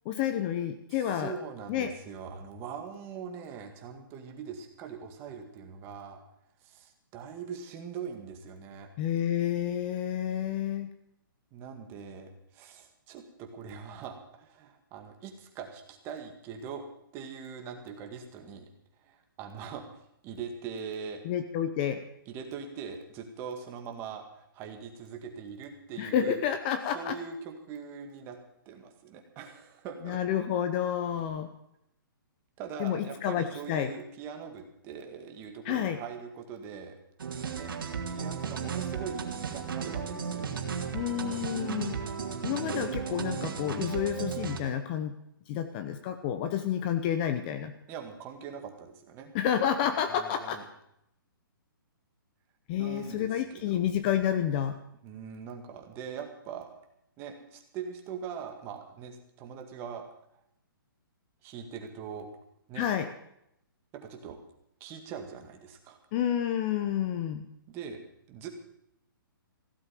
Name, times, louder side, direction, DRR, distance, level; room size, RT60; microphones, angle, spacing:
voice 1, 0.0-1.3 1.7-1.9 9.0-10.9 21.2-22.0 26.0-27.2 30.0-31.5 32.8-33.9 35.6-36.0 40.9-42.0 42.4-45.2 45.5-47.7 49.3-50.6 52.7-54.8 62.8-63.1 66.1-67.5, left 9 dB, 25° left, 9 dB, 0.8 m, -30 dB
voice 2, 0.9-6.2 6.6-8.9 11.5-16.8 17.1-18.7 19.0-21.2 22.3-26.5 26.9-28.4 28.7-30.2 32.6-37.0 37.5-37.7 38.1-40.6 47.9-49.3 50.1-50.6 52.8-53.8 55.0-56.7 57.2-60.0 61.4-62.3 62.7-62.9 63.9-64.4 64.8-66.0 67.7-68.0 68.3-68.5, right 6 dB, 20° right, 4 dB, 1.9 m, -42 dB
sound 1, 37.2-44.6, right 6 dB, 70° right, 2.8 m, -35 dB
16.0 x 8.0 x 9.2 m, 0.77 s
hypercardioid pair, 165°, 12 cm